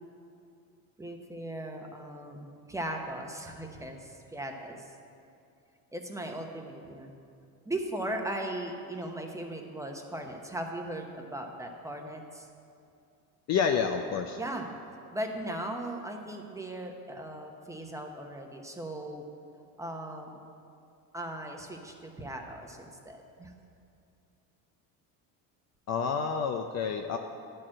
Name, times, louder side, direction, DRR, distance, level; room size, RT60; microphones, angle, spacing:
voice 1, 1.0-4.8 5.9-7.1 7.6-12.5 14.4-14.7 15.1-19.2 19.8-20.4 21.1-23.5, right 1 dB, 5° right, 2 dB, 0.8 m, -38 dB
voice 2, 13.5-14.4 25.9-27.2, left 6 dB, 40° left, 5 dB, 0.5 m, -29 dB
10.5 x 4.5 x 7.5 m, 2.5 s
supercardioid pair, 105°, 45 cm